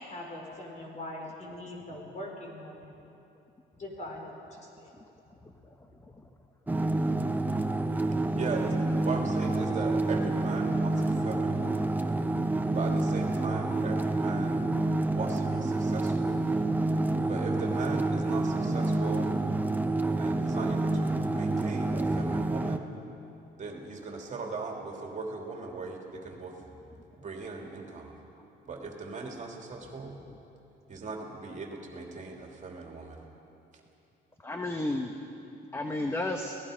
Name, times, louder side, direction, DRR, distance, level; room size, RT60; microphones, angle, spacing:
voice 1, 0.0-2.9 3.8-4.9, left 1 dB, 40° left, 0 dB, 4.9 m, -42 dB
sound 1, 6.7-22.8, right 2 dB, 10° right, 0.9 m, -28 dB
voice 2, 8.3-8.8 9.0-11.9 12.7-14.7 15.1-16.4 17.3-19.3 20.2-22.9 23.6-26.6 27.2-28.2 28.6-30.2 30.9-33.2, right 4 dB, 40° right, 0 dB, 3.0 m, -38 dB
voice 3, 21.9-22.4 34.4-35.1 35.7-36.6, left 2 dB, 15° left, 4 dB, 1.1 m, -34 dB
28.5 x 18.0 x 5.2 m, 2.8 s
cardioid pair, 115°, 19 cm